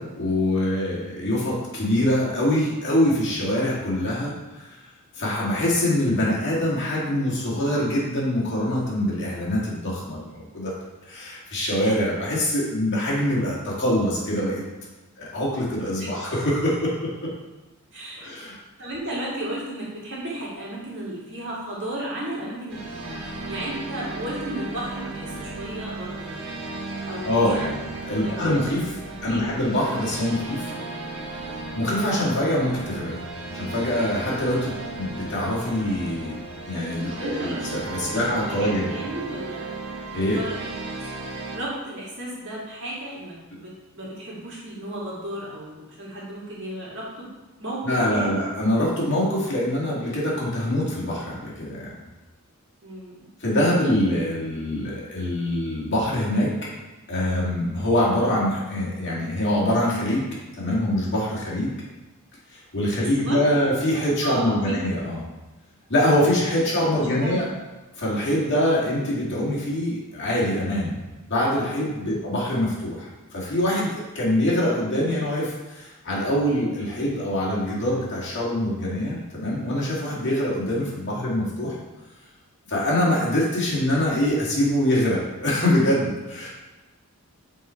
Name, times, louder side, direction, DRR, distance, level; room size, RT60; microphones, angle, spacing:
voice 1, 0.0-4.7 5.1-10.7 11.1-14.6 15.2-17.3 18.2-18.6 27.2-27.8 28.1-28.9 29.2-30.7 31.7-33.2 33.5-36.4 36.7-38.9 40.1-40.4 47.8-51.9 53.4-56.7 57.1-60.3 60.6-61.7 62.5-65.2 65.9-67.5 68.0-71.0 71.3-81.8 82.7-86.5, left 1 dB, 55° left, -5 dB, 2.2 m, -24 dB
voice 2, 17.9-18.3 18.8-23.1 23.5-26.4 27.0-27.7 28.1-28.5 29.2-29.5 37.1-37.6 38.0-39.7 40.2-40.7 41.5-47.3 47.6-48.4 52.8-53.2 63.0-63.7 64.2-64.8 67.2-67.5 72.0-72.2, right 1 dB, 55° right, -6 dB, 2.3 m, -34 dB
sound 1, 22.7-41.6, right 2 dB, 80° right, 1.2 m, -35 dB
7.4 x 4.3 x 4.4 m, 1.1 s
head